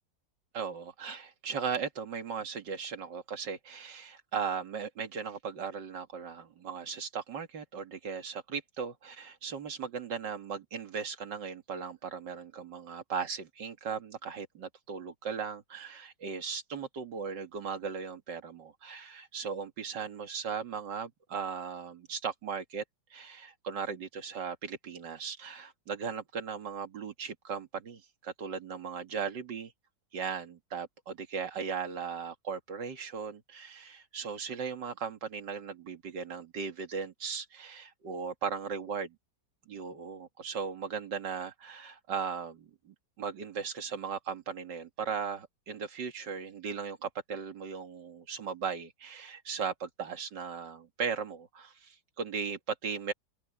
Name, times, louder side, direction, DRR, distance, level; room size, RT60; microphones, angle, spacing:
voice 1, 0.5-22.8 23.1-29.7 30.1-39.2 39.7-53.1, right 6 dB, 65° right, 2.5 m, -37 dB
open air
omnidirectional pair, 2.1 m